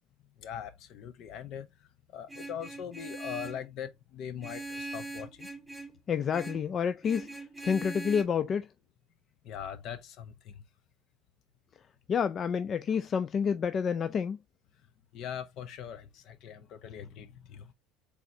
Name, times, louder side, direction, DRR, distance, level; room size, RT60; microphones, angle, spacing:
voice 1, 0.4-5.5 9.4-10.6 15.1-17.7, left 9 dB, 60° left, 0.7 m, -41 dB
Vehicle horn car horn honking, 2.3-3.7 4.4-6.0 6.3-6.7 7.0-8.2, right 2 dB, ahead, 1.6 m, -41 dB
voice 2, 6.1-8.7 12.1-14.4, left 7 dB, 40° left, 0.3 m, -29 dB
4.0 x 3.5 x 2.7 m
supercardioid pair, 90°, 0 cm